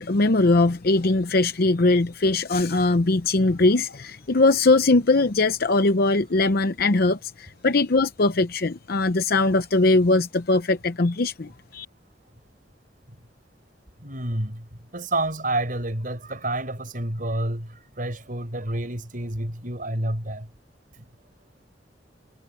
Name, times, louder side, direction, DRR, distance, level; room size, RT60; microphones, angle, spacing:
voice 1, 0.0-11.9, left 2 dB, 55° left, 0.7 m, -21 dB
voice 2, 14.0-20.5, right 1 dB, 50° right, 5.3 m, -29 dB
head